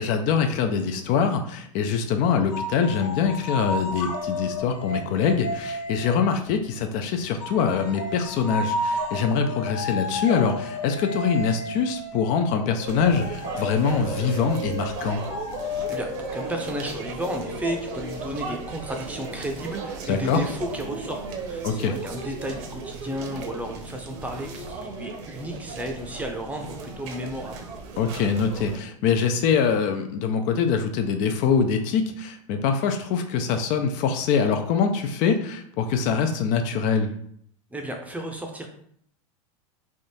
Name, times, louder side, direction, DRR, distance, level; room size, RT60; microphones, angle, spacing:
voice 1, 0.0-15.2 20.1-20.4 21.6-21.9 28.0-37.1, left 6 dB, 50° left, 6 dB, 0.5 m, -24 dB
sound 1, 2.5-6.9 7.4-18.8, left 1 dB, 65° left, 1.3 m, -33 dB
sound 2, 12.8-28.8, right 4 dB, 60° right, 0.9 m, -36 dB
voice 2, 15.9-27.7 37.7-38.7, equal, 10° right, 2 dB, 0.6 m, -33 dB
3.5 x 2.5 x 4.1 m, 0.67 s
hypercardioid pair, 120°, 17 cm